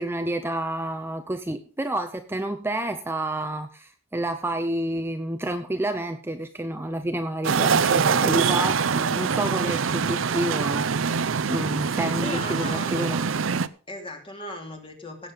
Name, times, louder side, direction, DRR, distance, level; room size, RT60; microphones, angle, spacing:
voice 1, 0.0-13.3, right 1 dB, 10° right, 8 dB, 0.7 m, -29 dB
sound 1, 7.4-13.7, right 6 dB, 75° right, 0.6 m, -24 dB
voice 2, 12.2-13.2 13.9-15.3, left 1 dB, 25° left, 3 dB, 2.9 m, -37 dB
17.0 x 7.6 x 5.1 m, 0.38 s
head